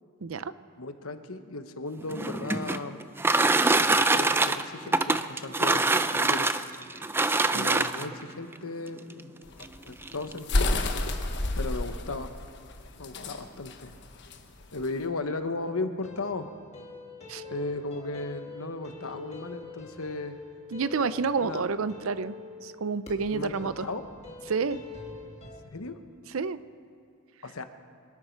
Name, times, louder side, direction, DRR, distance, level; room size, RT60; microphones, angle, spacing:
voice 1, 0.2-0.5 7.5-7.9 17.3-17.4 20.7-22.4 22.6-23.9 24.5-24.8 26.3-26.6, right 5 dB, 65° right, 15 dB, 0.5 m, -29 dB
voice 2, 0.8-3.0 3.7-6.5 7.5-9.3 9.8-10.8 11.5-12.3 13.0-13.9 14.7-16.5 17.5-20.3 21.4-21.6 23.3-24.0 25.7-26.0 27.4-27.6, left 3 dB, 75° left, 8 dB, 1.1 m, -36 dB
sound 1, 2.0-8.2 9.1-9.2 9.6-9.7 10.0-10.4, right 3 dB, 10° right, 0.3 m, -24 dB
sound 2, 9.5-15.0, left 2 dB, 55° left, 1.2 m, -30 dB
sound 3, 16.0-25.6, left 3 dB, 30° left, 1.9 m, -45 dB
26.0 x 12.0 x 4.6 m, 2.5 s
head